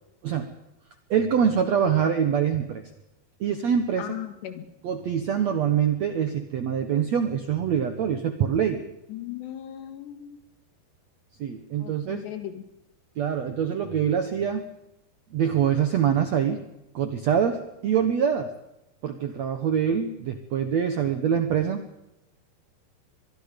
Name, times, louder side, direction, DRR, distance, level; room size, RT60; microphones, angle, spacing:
voice 1, 1.1-2.8 3.4-4.1 4.8-8.8 11.4-12.3 13.2-14.7 15.3-16.6 16.9-18.5 19.0-21.8, right 8 dB, 75° right, 7 dB, 1.6 m, -24 dB
voice 2, 4.0-4.7 9.1-10.4 11.8-12.6, left 11 dB, 90° left, 8 dB, 4.0 m, -37 dB
24.5 x 22.0 x 5.2 m, 0.89 s
omnidirectional pair, 4.8 m